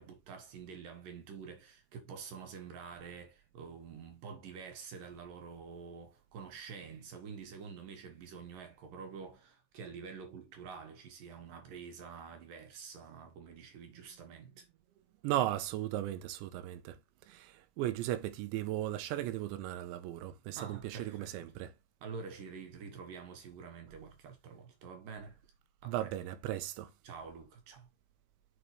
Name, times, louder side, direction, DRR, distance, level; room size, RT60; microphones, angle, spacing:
voice 1, 0.0-14.7 20.5-21.4 22.0-25.4 25.8-26.1 27.0-27.9, right 5 dB, 65° right, 2.4 m, -47 dB
voice 2, 15.2-21.7 25.9-26.9, right 13 dB, 85° right, 2.9 m, -36 dB
7.9 x 5.5 x 3.2 m
omnidirectional pair, 5.3 m